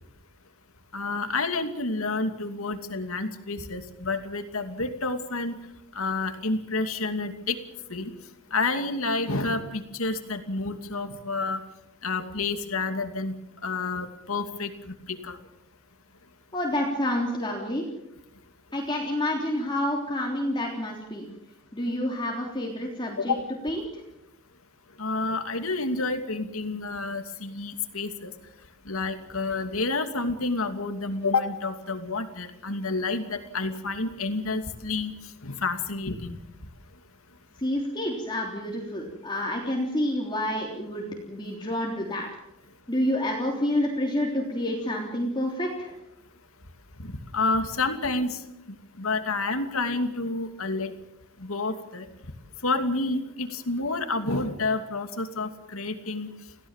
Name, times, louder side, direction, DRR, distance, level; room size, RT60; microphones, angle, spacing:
voice 1, 0.9-5.6 5.9-7.6 7.9-8.1 8.5-11.6 12.0-13.3 13.6-15.4 23.2-23.4 25.0-28.3 28.9-35.1 35.4-36.4 47.0-48.4 49.0-50.9 51.4-52.1 52.6-56.3, left 3 dB, 75° left, 7 dB, 2.6 m, -29 dB
voice 2, 16.5-17.8 18.7-21.3 21.7-23.3 23.6-23.8 37.6-42.3 42.9-45.9, left 1 dB, 20° left, -1 dB, 3.6 m, -28 dB
28.0 x 17.5 x 7.4 m, 0.87 s
head